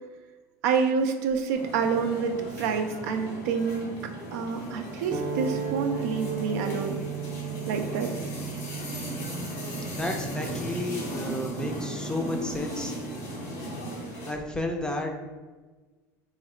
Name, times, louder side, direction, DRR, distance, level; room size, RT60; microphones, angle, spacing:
voice 1, 0.6-3.9 4.3-7.0 7.7-8.1, right 5 dB, 80° right, 5 dB, 0.4 m, -27 dB
sound 1, 1.5-14.3, right 1 dB, 85° left, 1.1 m, -37 dB
sound 2, 5.1-13.5, right 7 dB, 30° right, 0.6 m, -37 dB
voice 2, 9.9-12.9 14.3-15.2, left 2 dB, 10° left, 3 dB, 0.4 m, -32 dB
3.1 x 2.1 x 3.7 m, 1.3 s
supercardioid pair, 100°, 9 cm